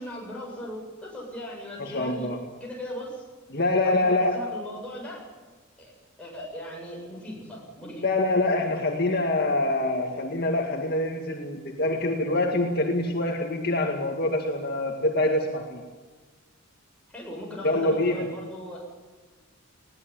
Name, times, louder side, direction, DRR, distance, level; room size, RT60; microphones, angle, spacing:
voice 1, 0.0-2.3 2.6-3.2 3.8-5.3 5.8-8.1 17.1-18.9, equal, 5° left, -4 dB, 7.8 m, -38 dB
voice 2, 1.8-2.4 3.5-4.5 8.0-15.8 17.6-18.3, left 2 dB, 50° left, 1 dB, 2.1 m, -25 dB
21.0 x 18.0 x 9.1 m, 1.3 s
head